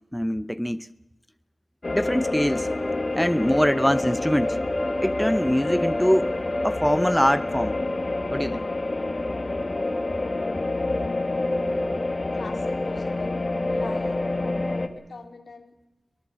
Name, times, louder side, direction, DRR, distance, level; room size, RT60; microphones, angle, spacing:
voice 1, 0.1-0.9 1.9-2.7 3.1-4.6 5.0-6.3 6.6-7.8 8.3-8.6, equal, 5° left, 0.7 m, -23 dB
sound 1, 1.8-14.9, left 2 dB, 35° left, 1.9 m, -27 dB
voice 2, 12.3-13.4 13.7-14.2 14.9-15.8, left 4 dB, 65° left, 3.4 m, -42 dB
23.0 x 19.5 x 7.5 m
wide cardioid pair, 90°, 0 cm